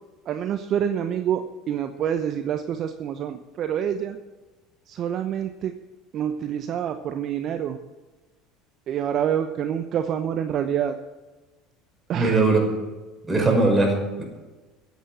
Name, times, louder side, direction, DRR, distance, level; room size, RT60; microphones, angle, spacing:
voice 1, 0.3-4.2 5.0-5.7 6.1-7.8 8.9-10.9 12.1-12.4, right 9 dB, 50° right, 8 dB, 0.9 m, -27 dB
voice 2, 12.1-12.7 13.3-14.2, right 3 dB, 20° right, 2 dB, 5.6 m, -20 dB
14.5 x 8.4 x 7.6 m, 1.2 s
hypercardioid pair, 75°, 0 cm